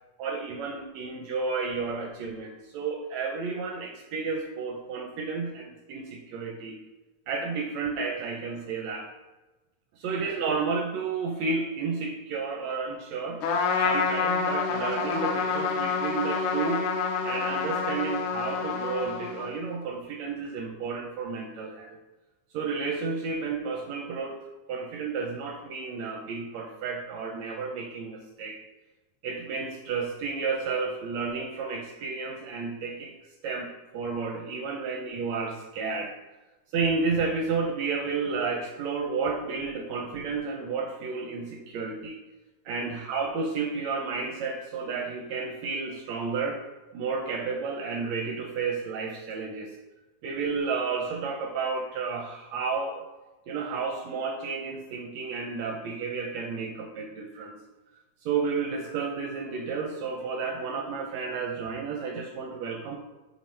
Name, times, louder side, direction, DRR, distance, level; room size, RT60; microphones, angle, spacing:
voice 1, 0.2-6.8 7.3-9.1 10.0-13.4 13.8-16.9 17.2-22.0 22.5-24.4 24.7-28.6 29.2-33.1 33.4-36.1 36.7-42.2 42.6-46.6 46.9-49.7 50.2-53.1 53.5-57.6 58.2-63.0, right 4 dB, 80° right, 2 dB, 1.6 m, -31 dB
Trumpet, 13.4-19.6, left 5 dB, 80° left, 2.1 m, -28 dB
8.4 x 3.5 x 3.2 m, 1.1 s
omnidirectional pair, 3.5 m